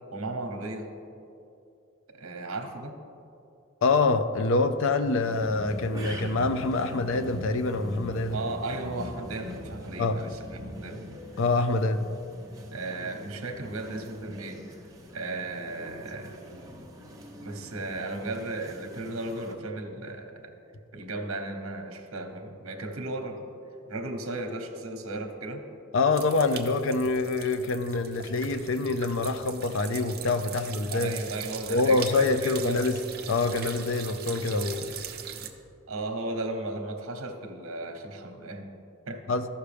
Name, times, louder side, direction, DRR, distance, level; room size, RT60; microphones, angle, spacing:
voice 1, 0.1-0.9 2.1-3.0 8.3-11.0 12.7-14.8 15.1-16.4 17.4-20.5 20.9-23.5 23.9-25.6 30.9-32.8 35.9-38.7 39.1-39.4, right 2 dB, 70° right, 4 dB, 0.9 m, -35 dB
voice 2, 3.8-8.4 10.0-10.2 11.4-12.0 25.9-31.2 31.7-33.0 33.3-34.9 39.3-39.5, left 3 dB, 65° left, 11 dB, 0.5 m, -25 dB
sound 1, 5.2-19.5, equal, 15° right, 0.8 m, -43 dB
sound 2, 26.1-35.5, right 7 dB, 50° right, 0.6 m, -40 dB
14.0 x 5.8 x 3.4 m, 2.6 s
head